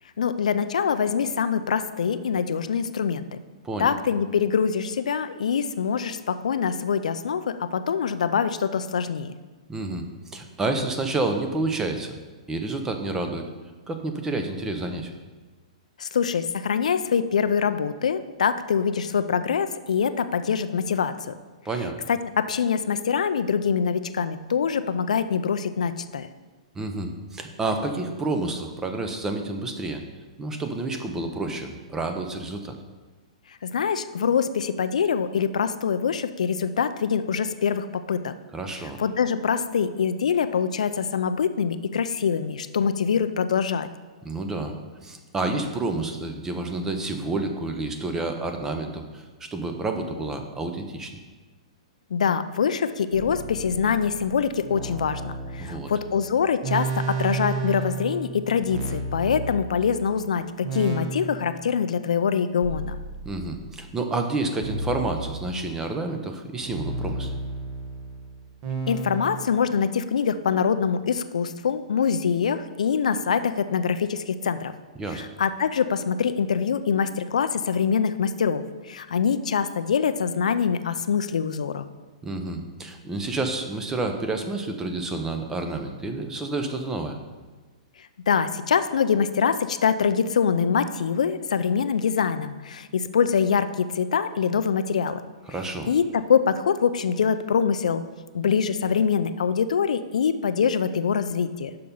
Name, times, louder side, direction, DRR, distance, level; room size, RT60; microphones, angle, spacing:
voice 1, 0.2-3.4 3.8-9.3 16.0-21.3 22.1-26.3 33.6-38.3 38.7-43.9 52.1-63.0 68.9-74.7 75.1-81.8 88.3-95.2 95.9-98.0 98.3-101.7, left 6 dB, 85° left, 11 dB, 0.4 m, -24 dB
voice 2, 9.7-10.0 10.3-12.1 12.5-13.5 13.9-15.1 21.6-22.0 26.7-30.0 30.4-32.8 38.5-39.0 44.2-44.8 45.0-51.1 55.6-55.9 63.2-67.3 75.0-75.2 82.2-87.2 95.5-95.9, right 2 dB, 10° right, 5 dB, 0.7 m, -29 dB
sound 1, 53.1-60.1 60.6-61.8 62.6-63.8 64.6-65.9 66.6-69.5, right 3 dB, 35° right, 1.2 m, -33 dB
6.5 x 5.7 x 5.4 m, 1.3 s
hypercardioid pair, 145°, 4 cm